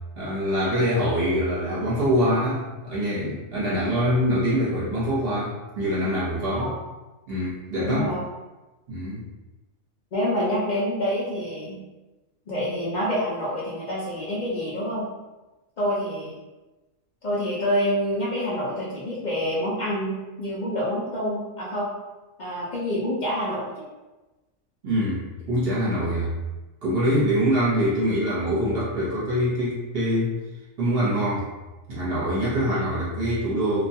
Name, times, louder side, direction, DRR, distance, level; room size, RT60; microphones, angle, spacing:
voice 1, 0.2-6.7 7.3-8.1 8.9-9.3 24.8-26.3 26.8-30.3 30.8-31.5 31.9-33.9, equal, 50° right, -8 dB, 0.9 m, -24 dB
voice 2, 7.8-8.2 10.1-11.8 12.5-15.1 15.8-16.3 17.2-21.9 22.4-23.8 32.7-32.8, equal, 60° left, -7 dB, 0.4 m, -27 dB
2.4 x 2.2 x 2.7 m, 1.1 s
omnidirectional pair, 1.4 m